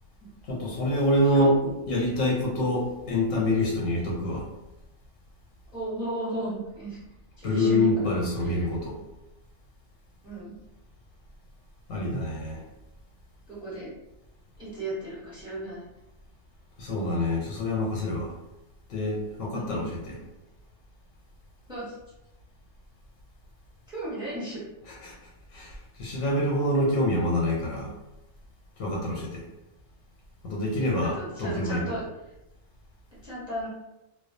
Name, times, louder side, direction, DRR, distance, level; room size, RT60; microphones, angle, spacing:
voice 1, 0.5-1.6 1.9-4.5 7.4-9.0 11.9-12.6 16.8-18.4 18.9-20.2 25.0-25.1 25.5-27.9 28.8-29.4 30.4-31.8, left 1 dB, 85° left, -3 dB, 1.0 m, -26 dB
voice 2, 5.7-7.0 7.4-8.1 8.4-8.6 10.2-10.5 13.5-13.9 14.6-15.9 19.5-20.1 21.7-21.9 23.9-24.6 29.1-29.2 31.0-32.0 33.2-33.7, right 1 dB, 5° right, -8 dB, 0.7 m, -35 dB
2.3 x 2.2 x 2.5 m, 0.93 s
omnidirectional pair, 1.3 m